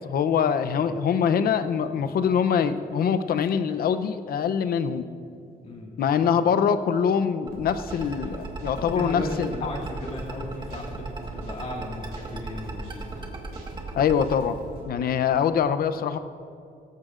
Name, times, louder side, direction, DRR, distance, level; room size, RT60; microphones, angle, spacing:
voice 1, 0.0-5.1 6.0-9.7 13.9-14.6 14.8-16.2, left 7 dB, 65° left, 10 dB, 0.6 m, -24 dB
voice 2, 5.6-5.9 8.2-8.3 8.7-11.1 11.3-13.1, left 1 dB, 40° left, -2 dB, 1.9 m, -35 dB
sound 1, 7.5-14.4, right 3 dB, 30° right, 1.5 m, -36 dB
sound 2, 7.5-14.8, right 2 dB, 90° right, 3.4 m, -43 dB
17.0 x 14.5 x 2.5 m, 2.5 s
cardioid pair, 130°, 16 cm